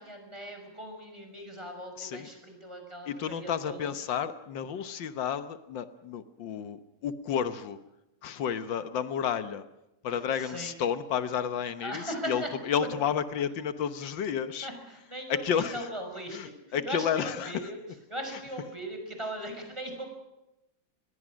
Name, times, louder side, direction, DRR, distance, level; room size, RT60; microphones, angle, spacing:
voice 1, 0.0-3.9 10.1-10.7 11.8-12.5 14.6-17.8 18.1-20.1, equal, 15° right, 3 dB, 5.9 m, -39 dB
voice 2, 2.0-2.3 3.1-7.8 8.2-9.6 10.0-14.7 15.3-15.9 16.3-17.7, left 8 dB, 85° left, 11 dB, 1.8 m, -31 dB
26.0 x 21.0 x 6.3 m, 0.92 s
omnidirectional pair, 2.0 m